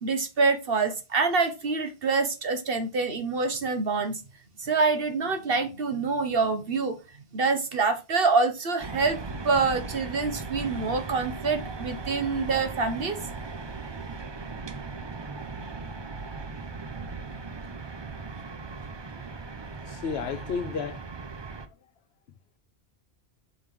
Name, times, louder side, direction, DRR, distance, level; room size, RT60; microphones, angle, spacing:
voice 1, 0.0-4.2 4.6-7.0 7.3-9.2 9.4-13.2, right 4 dB, 55° right, 1.5 m, -26 dB
sound 1, 8.8-21.7, right 4 dB, 30° right, 0.6 m, -38 dB
voice 2, 19.9-21.0, left 6 dB, 65° left, 1.1 m, -32 dB
6.7 x 5.4 x 4.6 m
omnidirectional pair, 1.1 m